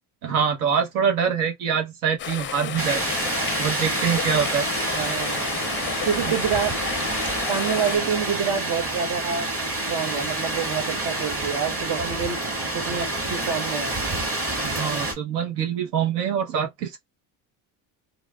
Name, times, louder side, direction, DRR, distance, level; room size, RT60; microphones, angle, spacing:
voice 1, 0.2-3.0 3.6-4.7 5.6-5.9 6.2-6.3 14.6-17.0, right 7 dB, 85° right, 1.0 m, -25 dB
sound 1, 2.2-8.0, left 9 dB, 30° left, 0.4 m, -32 dB
sound 2, 2.8-15.1, right 2 dB, 30° right, 1.8 m, -28 dB
voice 2, 4.9-5.5 6.0-6.9 7.5-9.5 9.9-12.4 12.7-14.0, right 7 dB, 60° right, 1.0 m, -27 dB
3.0 x 2.8 x 2.3 m
supercardioid pair, 95°, 42 cm